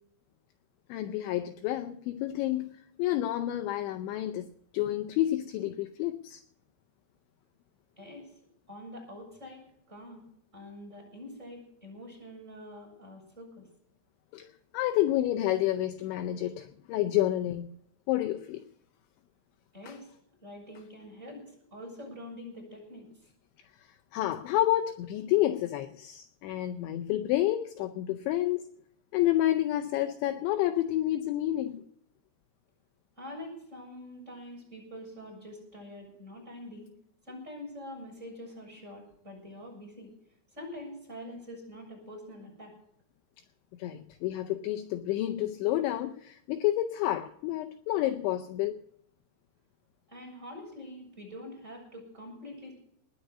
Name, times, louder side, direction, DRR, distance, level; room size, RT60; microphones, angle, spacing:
voice 1, 0.9-2.7 3.0-4.5 4.7-6.4 14.3-14.5 14.7-17.7 18.1-18.6 24.1-28.6 29.1-31.8 43.8-48.8, left 14 dB, 80° left, 2.8 m, -29 dB
voice 2, 8.0-8.3 8.7-10.2 10.5-13.7 19.7-20.1 20.4-23.3 33.2-36.9 37.3-40.1 40.5-42.7 50.1-52.7, left 1 dB, 15° right, 7.5 m, -45 dB
20.0 x 6.8 x 8.3 m
omnidirectional pair, 5.8 m